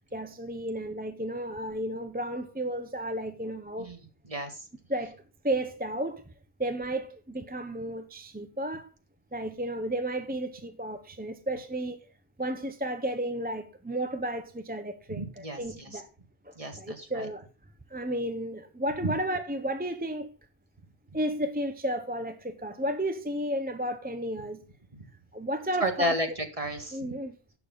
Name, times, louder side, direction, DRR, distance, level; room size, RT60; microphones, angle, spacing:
voice 1, 0.1-3.9 4.9-5.2 5.4-6.3 6.6-8.9 9.3-12.0 12.4-16.1 16.4-17.5 17.9-20.3 21.1-24.6 25.3-26.1 26.9-27.4, right 1 dB, 10° right, 0.7 m, -33 dB
voice 2, 15.2-16.0 16.6-17.2 19.0-19.1 25.8-27.0, equal, 35° right, 1.8 m, -31 dB
11.5 x 8.6 x 4.0 m
omnidirectional pair, 1.0 m